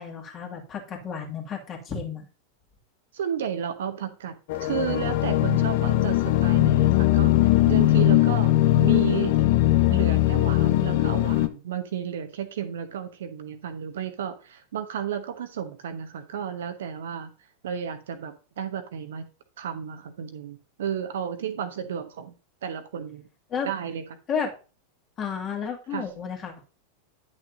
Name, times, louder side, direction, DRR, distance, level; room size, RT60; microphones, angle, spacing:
voice 1, 0.0-2.3 23.5-23.7 24.3-24.5 25.2-26.6, left 6 dB, 30° left, 2 dB, 2.1 m, -32 dB
voice 2, 3.1-4.3 4.6-9.4 9.9-17.3 17.6-19.2 19.6-22.3 22.6-23.2 23.6-24.0 25.9-26.0, right 8 dB, 60° right, 9 dB, 1.0 m, -33 dB
sound 1, 4.5-11.5, left 15 dB, 50° left, 0.7 m, -20 dB
10.5 x 6.4 x 2.6 m, 0.34 s
figure-of-eight pair, 90°, 0 cm